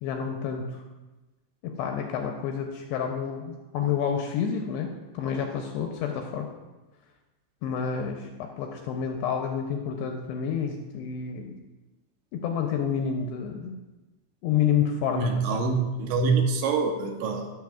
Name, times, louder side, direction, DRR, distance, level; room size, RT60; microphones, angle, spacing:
voice 1, 0.0-0.8 1.6-4.9 5.1-6.5 7.6-11.5 12.3-13.8 14.4-15.3, left 7 dB, 85° left, 3 dB, 2.4 m, -29 dB
voice 2, 15.2-17.5, right 4 dB, 85° right, 3 dB, 3.0 m, -25 dB
16.0 x 6.5 x 2.3 m, 1.1 s
omnidirectional pair, 5.3 m